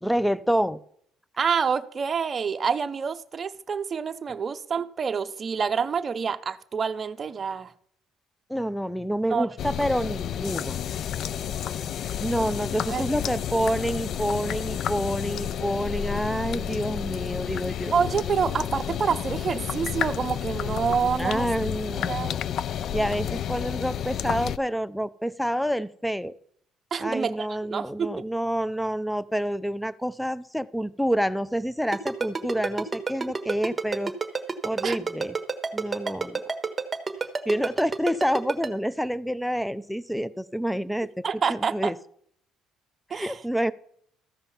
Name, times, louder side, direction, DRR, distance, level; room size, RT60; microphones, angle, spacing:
voice 1, 0.0-0.8 8.5-10.8 12.2-17.9 21.2-22.4 22.9-26.3 27.0-34.1 34.6-35.4 35.7-36.4 37.5-41.2 41.5-41.9 43.1-43.7, equal, ahead, 0.5 m, -28 dB
voice 2, 1.4-7.7 9.3-9.5 12.9-13.1 17.9-21.5 22.1-22.3 26.9-28.2 34.8-35.0 36.0-36.1 41.2-41.9 43.1-43.4, right 6 dB, 40° right, 0.7 m, -27 dB
sound 1, 9.6-24.6, left 9 dB, 60° left, 0.3 m, -31 dB
Ringtone, 31.9-38.7, right 4 dB, 20° right, 1.3 m, -28 dB
14.0 x 5.2 x 5.7 m
cardioid pair, 90°, 0 cm